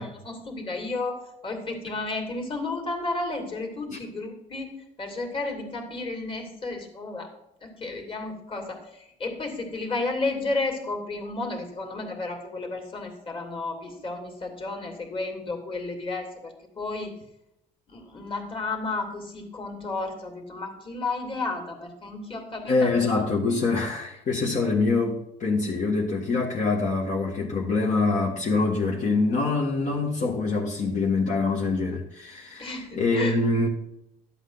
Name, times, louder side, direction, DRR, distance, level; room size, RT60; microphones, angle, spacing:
voice 1, 0.0-4.7 5.0-7.3 7.6-17.1 17.9-23.0 32.6-33.4, left 3 dB, 30° left, 3 dB, 2.6 m, -32 dB
voice 2, 22.7-33.7, left 3 dB, 50° left, -3 dB, 1.6 m, -25 dB
12.0 x 7.9 x 4.0 m, 0.84 s
cardioid pair, 110°, 17 cm